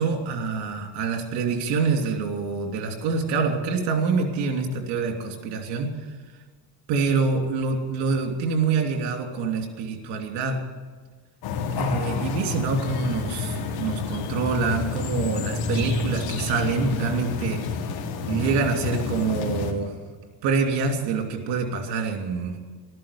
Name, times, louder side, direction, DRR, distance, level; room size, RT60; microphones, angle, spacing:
voice 1, 0.0-5.9 6.9-10.6 11.7-17.7 18.2-20.0 20.4-22.6, right 4 dB, 90° right, 3 dB, 3.0 m, -26 dB
sound 1, 11.4-19.7, left 5 dB, 70° left, 2.3 m, -29 dB
14.0 x 13.0 x 6.9 m, 1.4 s
cardioid pair, 105°, 39 cm